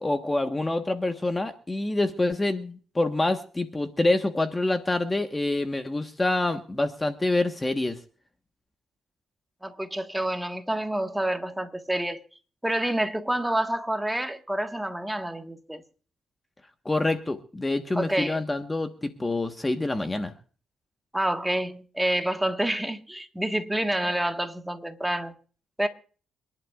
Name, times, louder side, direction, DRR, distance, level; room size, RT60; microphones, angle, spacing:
voice 1, 0.0-8.0 16.8-20.3, left 2 dB, 15° left, 1.3 m, -26 dB
voice 2, 9.6-12.2 12.6-15.8 17.9-18.4 21.1-25.3 25.8-25.9, right 1 dB, 5° right, 1.5 m, -28 dB
27.5 x 11.0 x 2.4 m
cardioid pair, 90°, 0 cm